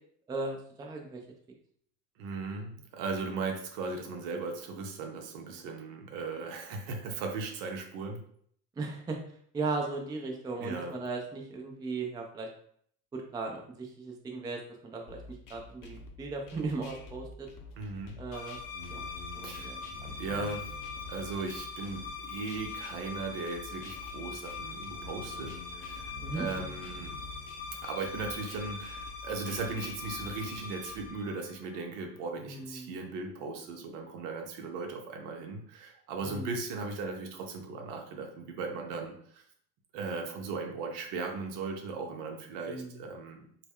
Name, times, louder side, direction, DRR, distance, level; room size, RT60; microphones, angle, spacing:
voice 1, 0.3-1.2 8.8-9.2 9.5-12.5 13.1-15.2 15.5-17.5 18.2-18.6 18.9-19.0 19.4-20.1 26.2-26.4 32.4-33.0 36.2-36.5 42.7-43.0, right 3 dB, 10° right, 1 dB, 0.3 m, -37 dB
voice 2, 2.2-8.2 10.6-10.9 17.8-18.2 19.4-19.7 20.2-20.7 21.1-27.2 27.7-39.4 39.9-43.5, right 4 dB, 70° right, 3 dB, 0.7 m, -37 dB
sound 1, 15.1-31.1, left 3 dB, 45° left, 0.6 m, -49 dB
sound 2, 18.3-31.9, left 4 dB, 85° left, 0.7 m, -42 dB
2.1 x 2.0 x 3.5 m, 0.62 s
hypercardioid pair, 60°, 48 cm